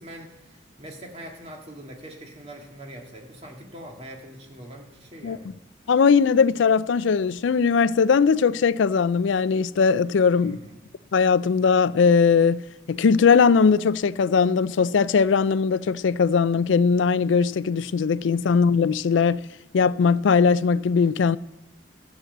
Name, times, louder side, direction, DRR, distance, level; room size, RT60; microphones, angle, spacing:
voice 1, 0.0-5.5 10.3-10.8, right 1 dB, 35° right, 2.0 m, -43 dB
voice 2, 5.9-10.6 11.1-12.6 12.9-19.4 19.7-21.4, left 5 dB, 80° left, 0.4 m, -20 dB
13.0 x 7.5 x 7.9 m
head